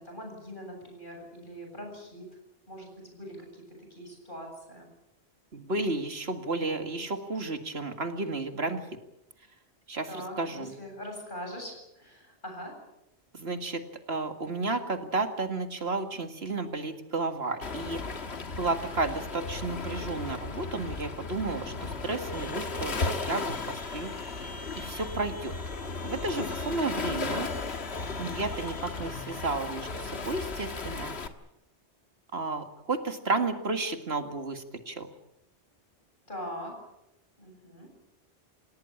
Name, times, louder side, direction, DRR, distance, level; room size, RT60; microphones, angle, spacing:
voice 1, 0.0-2.2 2.7-3.5 3.9-4.9 10.1-12.7 26.6-27.1 36.3-36.7 37.4-37.9, equal, 45° left, 2 dB, 8.4 m, -42 dB
voice 2, 5.5-8.8 9.9-10.7 13.3-13.8 14.1-18.0 18.5-25.5 26.0-27.5 28.2-31.1 32.3-35.1, right 3 dB, 65° right, 7 dB, 2.3 m, -32 dB
Waves surf, 17.6-31.3, left 3 dB, 70° left, 1.9 m, -35 dB
sound 1, 22.3-29.7, left 1 dB, 20° left, 2.0 m, -48 dB
28.5 x 17.5 x 8.7 m, 0.87 s
omnidirectional pair, 1.1 m